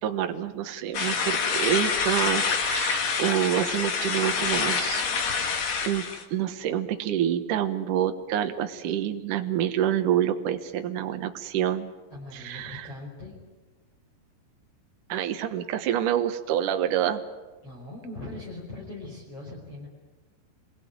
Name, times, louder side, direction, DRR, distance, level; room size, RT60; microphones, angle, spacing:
voice 1, 0.0-5.0 5.8-11.9 12.3-12.9 15.1-17.2, right 10 dB, 80° right, 6 dB, 1.8 m, -27 dB
sound 1, 0.9-6.2, left 5 dB, 55° left, 2.2 m, -27 dB
voice 2, 12.1-13.3 17.6-19.9, left 2 dB, 30° left, -3 dB, 5.4 m, -40 dB
27.5 x 21.5 x 9.5 m, 1.2 s
omnidirectional pair, 5.7 m